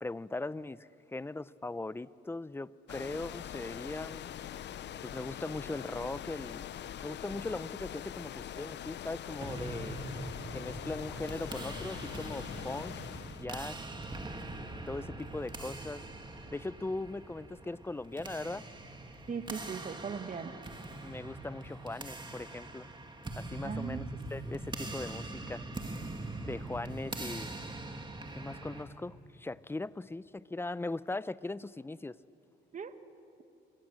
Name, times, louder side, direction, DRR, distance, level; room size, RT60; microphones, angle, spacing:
voice 1, 0.0-4.7 5.0-6.7 7.0-10.0 10.5-13.0 13.4-13.8 14.9-16.0 16.5-18.6 21.0-22.9 23.4-25.6 26.5-27.5 28.3-32.2, left 2 dB, 10° left, 18 dB, 0.5 m, -39 dB
sound 1, 2.9-13.5, left 10 dB, 65° left, 0.7 m, -43 dB
sound 2, 9.4-28.8, right 2 dB, 25° right, 2.4 m, -42 dB
voice 2, 19.3-20.5 23.6-24.3 32.7-32.9, right 5 dB, 40° right, 10 dB, 1.5 m, -39 dB
25.0 x 22.0 x 7.5 m, 2.6 s
cardioid pair, 90°, 20 cm